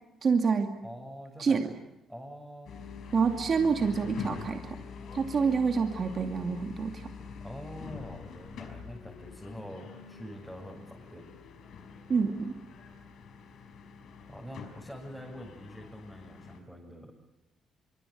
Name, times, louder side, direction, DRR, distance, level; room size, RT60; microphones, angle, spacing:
voice 1, 0.2-0.7 1.4-1.7 3.1-4.8 5.1-7.1 12.1-12.5, right 5 dB, 45° right, 4 dB, 2.4 m, -27 dB
voice 2, 0.8-1.7 2.1-2.7 7.4-11.3 14.3-17.1, equal, ahead, -2 dB, 7.2 m, -45 dB
sound 1, 2.7-16.6, left 5 dB, 70° left, 5.0 m, -45 dB
25.0 x 24.5 x 8.8 m, 0.94 s
cardioid pair, 90°, 0 cm